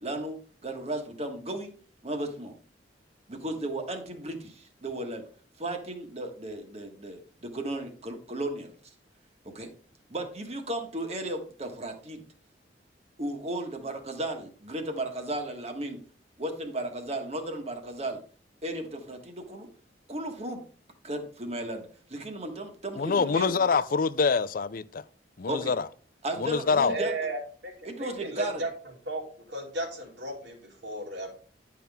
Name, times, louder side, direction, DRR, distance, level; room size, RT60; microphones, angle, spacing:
voice 1, 0.0-1.7 2.0-2.5 3.3-5.2 5.6-8.7 9.4-9.7 10.1-12.2 13.2-16.0 16.4-18.2 18.6-19.7 20.1-20.6 21.0-23.5 25.5-25.7 26.2-27.1 27.8-28.6, right 1 dB, 35° right, 1.4 m, -35 dB
voice 2, 23.0-25.0 25.4-25.8 26.4-26.9, left 5 dB, 50° left, 0.4 m, -25 dB
voice 3, 26.9-27.7 28.0-28.7 29.1-29.2 29.5-31.3, right 1 dB, 80° right, 2.7 m, -34 dB
10.5 x 5.9 x 3.5 m
head